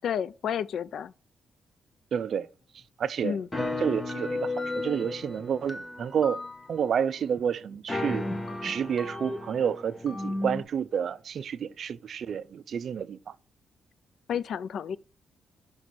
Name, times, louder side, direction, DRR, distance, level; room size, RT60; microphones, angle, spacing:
voice 1, 0.0-1.1 3.2-3.5 14.3-15.0, left 8 dB, 65° left, 0.3 m, -31 dB
voice 2, 2.1-2.5 3.0-3.4 3.8-6.4 6.7-8.2 8.6-13.3, right 8 dB, 55° right, 0.4 m, -29 dB
sound 1, 3.5-6.9 7.3-7.4 7.7-10.6, left 2 dB, 15° left, 0.8 m, -34 dB
5.2 x 4.1 x 6.0 m
cardioid pair, 135°, 0 cm